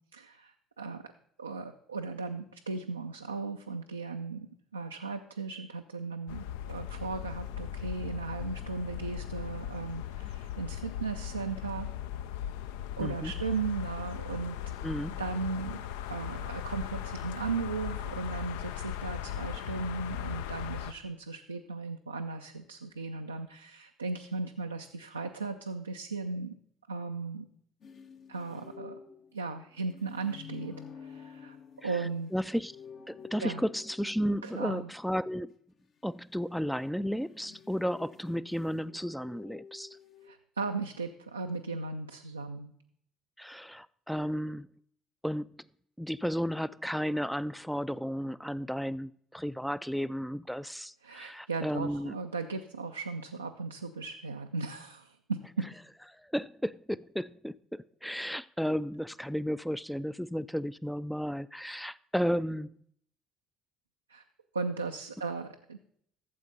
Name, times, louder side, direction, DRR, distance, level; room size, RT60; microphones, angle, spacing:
voice 1, 0.1-1.1 1.4-4.5 4.7-11.9 13.0-14.8 15.2-26.5 26.9-27.5 28.3-29.0 29.3-31.6 31.8-32.3 33.4-33.6 34.4-34.9 40.2-42.7 51.0-55.7 64.1-64.2 64.5-65.8, right 4 dB, 85° right, 0.4 m, -37 dB
sound 1, 6.3-20.9, left 10 dB, 70° left, 0.4 m, -38 dB
voice 2, 13.0-13.3 14.8-15.2 32.3-32.7 33.1-35.5 36.0-40.0 43.4-44.7 45.2-45.5 46.0-52.2 56.2-62.8, equal, ahead, 0.3 m, -33 dB
sound 2, 27.8-35.1 37.0-40.3, left 7 dB, 45° left, 0.8 m, -50 dB
12.0 x 7.7 x 4.0 m
figure-of-eight pair, 55°, 0 cm